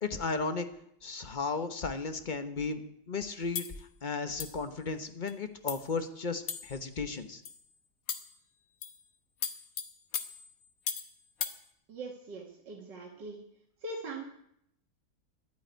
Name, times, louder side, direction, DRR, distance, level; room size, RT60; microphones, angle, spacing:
voice 1, 0.0-0.7 1.0-2.8 3.1-3.7 4.0-7.4, left 4 dB, 35° left, 9 dB, 1.0 m, -34 dB
sound 1, 3.6-3.8 4.4-4.7 5.3-5.4 5.7-5.9 6.5-6.9 7.5-7.6 8.1-8.4 8.8-9.0 9.4-11.1 11.4-11.6, left 7 dB, 55° left, 1.4 m, -37 dB
voice 2, 11.9-13.5 13.8-14.2, right 2 dB, 90° right, -1 dB, 2.4 m, -41 dB
12.0 x 9.7 x 9.1 m, 0.74 s
omnidirectional pair, 1.9 m